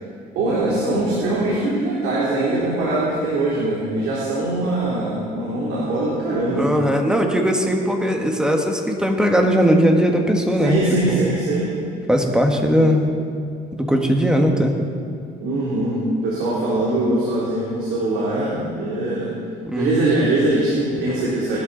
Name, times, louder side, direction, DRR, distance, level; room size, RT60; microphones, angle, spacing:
voice 1, 0.3-6.7 10.6-11.7 15.4-19.3 19.7-21.6, right 2 dB, 85° right, -6 dB, 3.3 m, -22 dB
voice 2, 6.5-11.2 12.1-13.1 13.7-14.7 19.6-20.1, equal, 5° right, 2 dB, 1.7 m, -19 dB
19.5 x 12.0 x 4.1 m, 2.3 s
cardioid pair, 110°, 17 cm